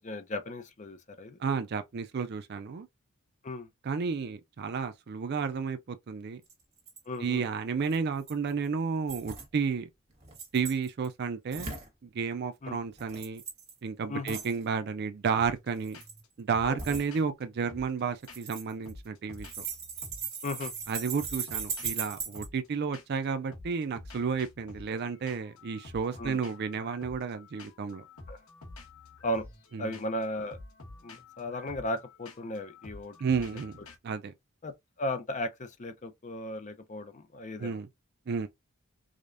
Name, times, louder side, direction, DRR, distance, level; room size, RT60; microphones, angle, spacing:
voice 1, 0.0-1.4 3.4-3.7 7.1-7.5 12.6-12.8 14.1-14.4 16.7-17.0 20.4-20.7 26.2-26.4 28.3-28.4 29.2-29.5 29.8-30.6 31.0-33.1 34.6-37.8, left 1 dB, 35° left, 0.6 m, -36 dB
voice 2, 1.4-2.9 3.8-6.4 7.2-9.9 10.5-11.7 12.0-13.4 13.8-16.0 16.4-19.6 20.9-28.0 29.7-29.9 33.2-34.3 37.6-37.9 38.3-38.5, right 5 dB, 50° right, 0.4 m, -32 dB
sound 1, 6.5-6.6 6.8-7.0 7.9-8.5 9.1-9.5 10.2-11.1 11.5-11.9 13.0-13.7 14.3-14.6 15.8-16.2 16.8-17.0 18.2-19.0 19.3-22.5, right 6 dB, 30° right, 1.5 m, -38 dB
sound 2, 15.4-15.7 15.9-16.3 16.5-18.6 18.8-20.3 20.6-20.9 21.2-23.2 23.5-33.9, left 2 dB, 80° left, 1.2 m, -49 dB
4.9 x 2.2 x 2.5 m
head